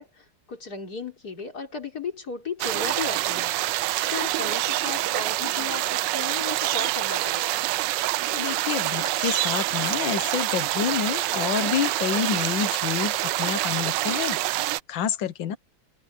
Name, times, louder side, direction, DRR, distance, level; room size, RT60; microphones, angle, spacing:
voice 1, 0.0-3.8 4.1-7.7, left 5 dB, 55° left, 4.4 m, -35 dB
sound 1, 2.6-14.8, right 16 dB, 75° right, 1.2 m, -26 dB
voice 2, 8.3-15.6, left 9 dB, 85° left, 1.8 m, -28 dB
omnidirectional pair, 2.0 m